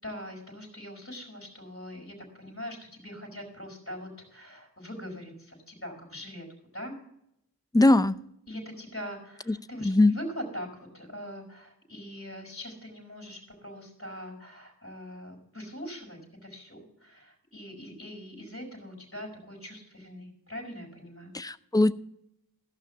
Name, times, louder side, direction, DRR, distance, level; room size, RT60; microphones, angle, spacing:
voice 1, 0.0-6.5 6.7-7.0 8.5-10.7 10.9-21.3, equal, 35° left, 0 dB, 4.8 m, -42 dB
voice 2, 7.7-8.2 9.8-10.1 21.3-21.9, left 2 dB, 10° left, 14 dB, 0.5 m, -20 dB
15.0 x 5.7 x 6.9 m, 0.76 s
wide cardioid pair, 45°, 37 cm